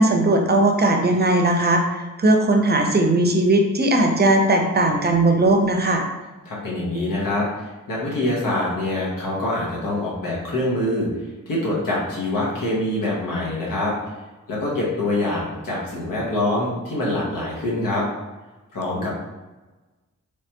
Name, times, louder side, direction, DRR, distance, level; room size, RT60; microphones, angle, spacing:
voice 1, 0.0-1.8 2.2-6.1, right 2 dB, 30° right, 3 dB, 0.5 m, -18 dB
voice 2, 6.4-11.1 11.5-13.9 14.5-18.0 18.7-19.1, left 1 dB, 90° left, -4 dB, 0.9 m, -25 dB
3.2 x 2.1 x 2.8 m, 1.2 s
cardioid pair, 40°, 32 cm